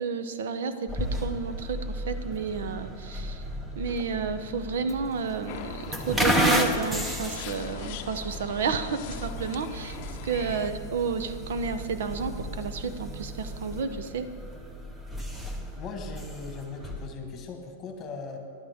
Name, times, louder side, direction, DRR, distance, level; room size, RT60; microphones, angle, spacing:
voice 1, 0.0-3.4 3.8-14.3, right 5 dB, 75° right, 10 dB, 0.8 m, -31 dB
sound 1, 0.9-17.1, equal, 10° right, 0.9 m, -33 dB
sound 2, 5.5-10.7, left 10 dB, 45° left, 0.6 m, -42 dB
voice 2, 15.8-18.4, left 4 dB, 25° left, 4 dB, 1.5 m, -39 dB
15.0 x 11.0 x 3.6 m, 2.2 s
supercardioid pair, 155°, 0 cm